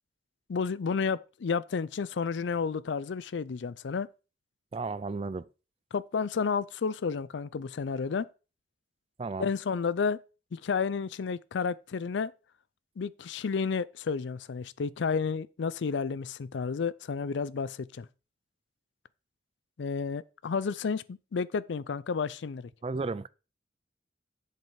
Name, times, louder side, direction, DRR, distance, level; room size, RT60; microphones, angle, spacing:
voice 1, 0.5-4.1 5.9-8.3 9.4-10.2 10.5-12.3 13.0-18.1 19.8-22.7, left 5 dB, 80° left, 0.4 m, -31 dB
voice 2, 4.7-5.5 9.2-9.5 22.8-23.3, right 3 dB, 30° right, 0.3 m, -33 dB
7.5 x 5.4 x 5.7 m
head